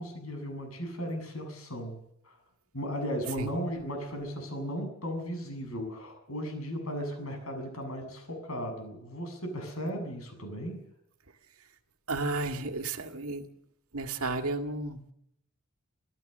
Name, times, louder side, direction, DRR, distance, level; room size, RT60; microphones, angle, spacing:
voice 1, 0.0-2.4 2.7-10.8, equal, 80° left, 5 dB, 7.7 m, -36 dB
voice 2, 12.1-13.5 13.9-15.1, right 2 dB, 90° right, 7 dB, 2.0 m, -33 dB
26.0 x 15.5 x 6.8 m, 0.78 s
head